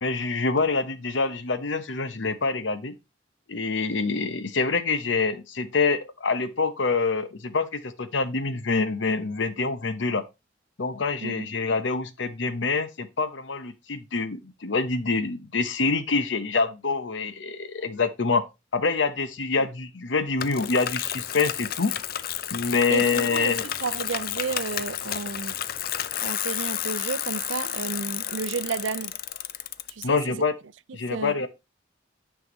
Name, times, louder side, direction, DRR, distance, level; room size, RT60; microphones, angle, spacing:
voice 1, 0.0-2.9 3.5-10.2 10.8-18.4 18.7-21.9 22.5-23.7 30.0-30.5 30.9-31.5, left 4 dB, 75° left, 0.8 m, -26 dB
Bicycle, 20.4-30.0, left 11 dB, 50° left, 0.4 m, -31 dB
voice 2, 22.9-25.6 26.2-29.1 29.9-30.5 30.9-31.4, right 5 dB, 80° right, 0.5 m, -32 dB
9.6 x 5.8 x 3.1 m
head